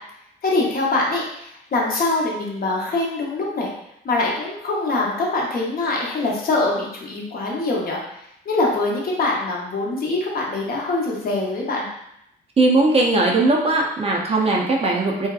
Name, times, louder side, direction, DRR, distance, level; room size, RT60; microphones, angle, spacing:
voice 1, 0.4-3.7 4.0-8.0 8.5-11.9, left 2 dB, 50° left, -2 dB, 0.7 m, -23 dB
voice 2, 12.6-15.3, right 2 dB, 30° right, -1 dB, 0.5 m, -19 dB
2.7 x 2.1 x 2.3 m, 0.79 s
cardioid pair, 90°, 20 cm